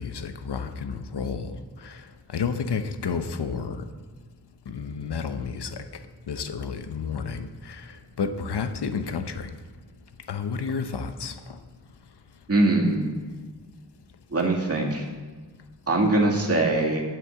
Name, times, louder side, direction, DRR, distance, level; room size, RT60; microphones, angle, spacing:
voice 1, 0.0-3.8 4.7-6.0 6.3-9.5 10.3-11.6, left 5 dB, 80° left, 9 dB, 0.8 m, -31 dB
voice 2, 12.5-13.1 14.3-15.0 15.9-17.0, right 2 dB, 35° right, -1 dB, 2.3 m, -22 dB
8.6 x 6.9 x 7.0 m, 1.4 s
cardioid pair, 45°, 40 cm